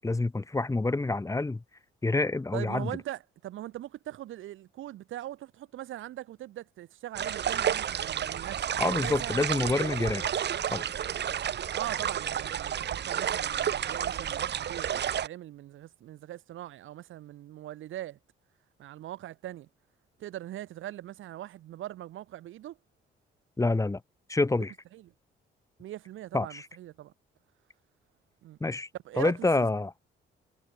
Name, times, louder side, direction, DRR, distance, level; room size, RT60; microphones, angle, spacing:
voice 1, 0.0-1.6 2.0-2.9 8.8-10.3 10.7-10.8 23.6-24.0 24.3-24.7 26.3-26.6 28.6-28.9 29.2-29.9, left 2 dB, 15° left, 1.4 m, -27 dB
voice 2, 2.5-9.7 11.7-18.2 18.8-19.7 20.2-22.8 24.9-25.1 25.8-27.1 28.4-28.6 29.0-29.7, right 13 dB, 80° right, 4.2 m, -41 dB
sound 1, 7.1-15.3, right 9 dB, 60° right, 3.2 m, -31 dB
cardioid pair, 90°, 20 cm